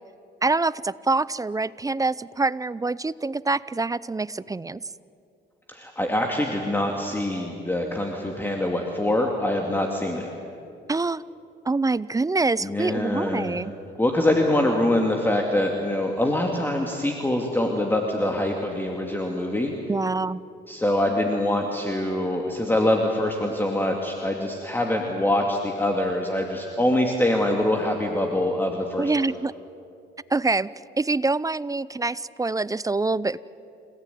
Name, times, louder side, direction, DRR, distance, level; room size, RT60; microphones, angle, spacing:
voice 1, 0.4-4.8 10.9-11.2 11.6-13.7 19.9-20.4 29.0-29.5 30.3-30.7 31.0-33.4, right 3 dB, 15° right, 19 dB, 0.5 m, -25 dB
voice 2, 5.7-10.3 12.6-13.6 14.0-19.7 20.7-29.1, left 1 dB, 10° left, 1 dB, 2.4 m, -24 dB
28.0 x 17.5 x 9.3 m, 2.6 s
cardioid pair, 90°, 20 cm